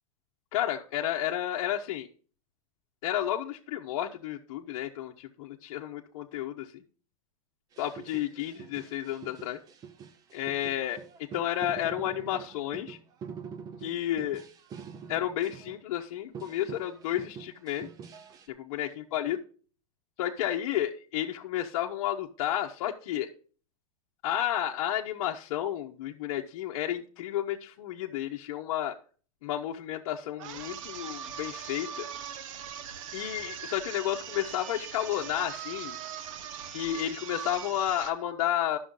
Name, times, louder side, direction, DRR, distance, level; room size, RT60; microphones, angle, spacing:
voice 1, 0.5-2.1 3.0-6.8 7.8-9.6 10.3-11.0 11.3-13.0 13.8-14.4 15.1-17.9 18.7-19.4 20.2-23.3 24.2-28.9 29.4-32.1 33.1-36.0 36.7-38.8, left 12 dB, 60° left, 0 dB, 0.9 m, -31 dB
sound 1, 7.7-16.1 16.3-18.5, right 6 dB, 20° right, 0.6 m, -45 dB
sound 2, 30.4-38.2, right 8 dB, 60° right, 1.0 m, -41 dB
11.0 x 6.3 x 3.8 m, 0.40 s
supercardioid pair, 155°, 18 cm